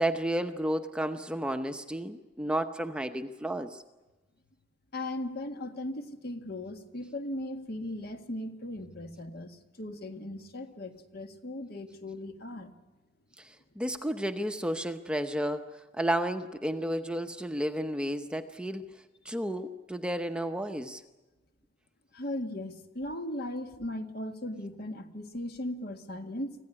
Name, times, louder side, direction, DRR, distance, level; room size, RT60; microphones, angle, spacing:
voice 1, 0.0-3.8 13.4-21.0, right 1 dB, 5° right, 7 dB, 0.8 m, -32 dB
voice 2, 4.9-12.7 22.1-26.7, left 1 dB, 55° left, 6 dB, 1.8 m, -38 dB
25.5 x 16.0 x 9.9 m, 1.1 s
head